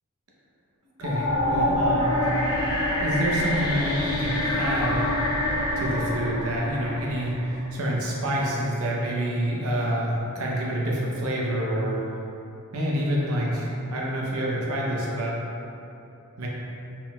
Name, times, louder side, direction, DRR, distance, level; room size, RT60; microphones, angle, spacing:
sound 1, 1.0-8.1, left 1 dB, 90° left, 0.8 m, -26 dB
voice 1, 1.0-2.1 3.0-5.1 5.8-12.0 12.7-15.4 16.4-16.5, equal, 70° right, -4 dB, 0.8 m, -27 dB
4.5 x 3.8 x 2.3 m, 2.9 s
head